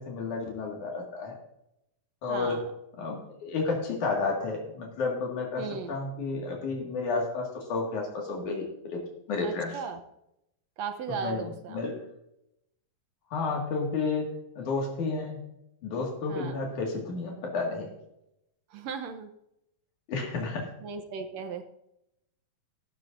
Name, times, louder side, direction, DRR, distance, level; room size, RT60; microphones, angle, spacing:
voice 1, 0.0-1.4 2.2-2.6 3.0-8.7 8.9-9.0 9.3-9.8 11.1-11.4 11.7-12.0 13.3-14.3 14.6-15.4 15.8-17.9 20.1-20.7, left 4 dB, 75° left, -1 dB, 3.4 m, -31 dB
voice 2, 2.3-2.7 5.6-6.0 9.4-10.0 10.8-11.8 16.3-16.6 18.7-19.3 20.8-21.6, right 6 dB, 70° right, 8 dB, 1.8 m, -36 dB
14.0 x 12.0 x 2.6 m, 0.83 s
omnidirectional pair, 3.5 m